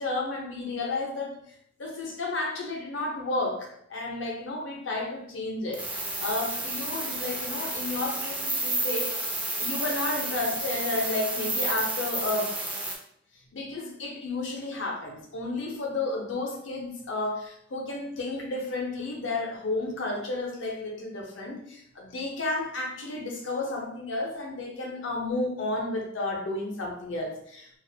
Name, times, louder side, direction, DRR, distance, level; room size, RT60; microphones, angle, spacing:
voice 1, 0.0-1.4 1.8-9.2 9.6-12.5 13.5-27.7, left 2 dB, 75° left, 0 dB, 0.6 m, -32 dB
sound 1, 5.7-13.0, right 2 dB, 10° right, 0.3 m, -31 dB
2.4 x 2.0 x 2.6 m, 0.69 s
head